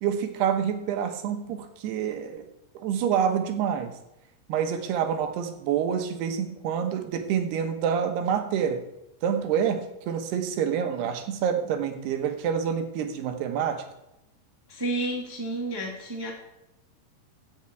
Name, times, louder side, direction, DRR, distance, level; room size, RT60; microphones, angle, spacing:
voice 1, 0.0-2.5 2.8-3.9 4.5-8.8 9.2-13.8, right 8 dB, 80° right, 6 dB, 3.1 m, -27 dB
voice 2, 14.7-16.3, right 2 dB, 10° right, -3 dB, 1.3 m, -31 dB
16.0 x 7.1 x 4.6 m, 0.88 s
omnidirectional pair, 4.7 m